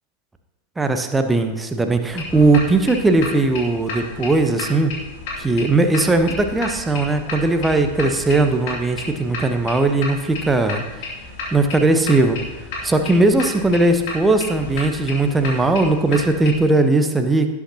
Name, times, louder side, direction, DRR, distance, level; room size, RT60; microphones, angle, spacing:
voice 1, 0.8-4.9 5.4-11.1 11.5-12.4 12.8-17.5, right 2 dB, 10° right, 7 dB, 1.0 m, -18 dB
sound 1, 2.1-16.6, left 3 dB, 50° left, 2.4 m, -33 dB
17.0 x 8.4 x 2.9 m, 1.1 s
figure-of-eight pair, 90°, 0 cm